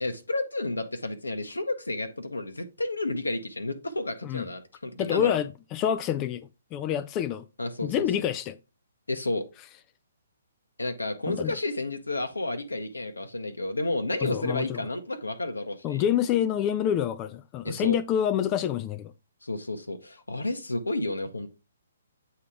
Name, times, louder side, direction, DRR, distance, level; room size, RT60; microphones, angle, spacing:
voice 1, 0.0-5.3 7.6-7.9 9.1-9.5 10.8-16.0 17.6-18.0 19.4-21.5, left 2 dB, 85° left, 0.7 m, -31 dB
voice 2, 5.0-7.5 7.8-8.6 11.3-11.6 14.2-14.9 15.8-19.1, left 10 dB, 25° left, 0.3 m, -27 dB
8.3 x 2.9 x 4.7 m
figure-of-eight pair, 130°, 0 cm